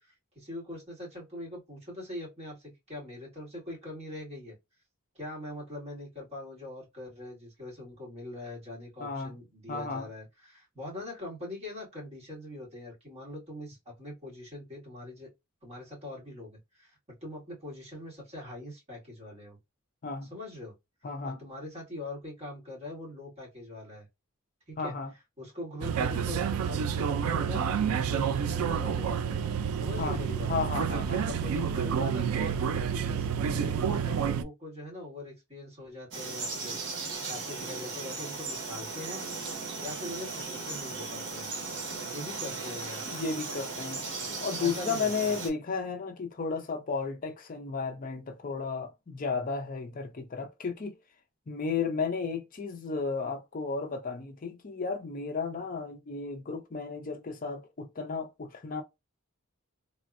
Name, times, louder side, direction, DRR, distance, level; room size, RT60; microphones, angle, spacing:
voice 1, 0.0-4.6 5.2-15.3 15.6-19.6 20.3-20.7 21.2-24.1 24.7-24.9 25.4-29.5 29.8-30.5 31.1-36.8 37.3-39.2 39.8-41.5 42.0-43.0 44.6-45.3, left 1 dB, 30° right, 1.7 m, -42 dB
voice 2, 9.0-9.3 9.7-10.1 20.0-20.3 21.0-21.4 24.8-25.1 30.0-30.2 30.5-31.3 43.1-44.0 44.4-51.0 51.5-58.8, left 4 dB, 40° left, 0.5 m, -33 dB
sound 1, 25.8-34.4, right 7 dB, 85° right, 0.3 m, -29 dB
Frog, 36.1-45.5, right 3 dB, 55° right, 1.0 m, -37 dB
3.4 x 2.1 x 2.4 m
head